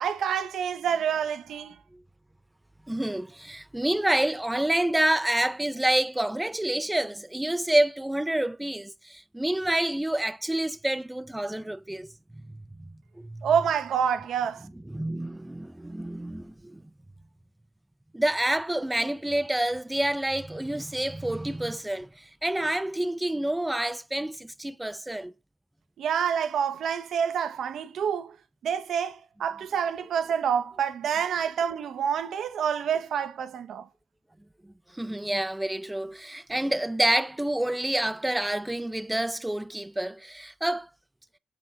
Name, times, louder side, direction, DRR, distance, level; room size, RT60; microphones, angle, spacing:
voice 1, 0.0-1.8 13.4-14.7 26.0-28.4 28.6-33.9, right 8 dB, 80° right, 0.9 m, -27 dB
voice 2, 2.9-12.1 13.2-13.5 14.9-16.8 18.1-25.3 34.9-40.9, right 1 dB, 10° right, 0.5 m, -28 dB
7.1 x 5.6 x 6.3 m
cardioid pair, 75°, 0 cm